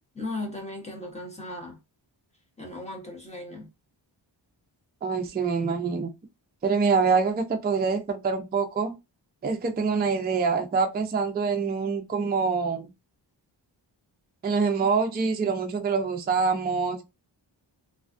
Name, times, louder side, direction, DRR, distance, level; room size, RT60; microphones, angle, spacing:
voice 1, 0.2-1.8 2.6-3.7, left 2 dB, 15° left, 0.9 m, -36 dB
voice 2, 5.0-6.1 6.6-8.9 9.4-12.9 14.4-17.0, right 5 dB, 25° right, 0.3 m, -25 dB
2.4 x 2.3 x 2.4 m
wide cardioid pair, 140°, 45 cm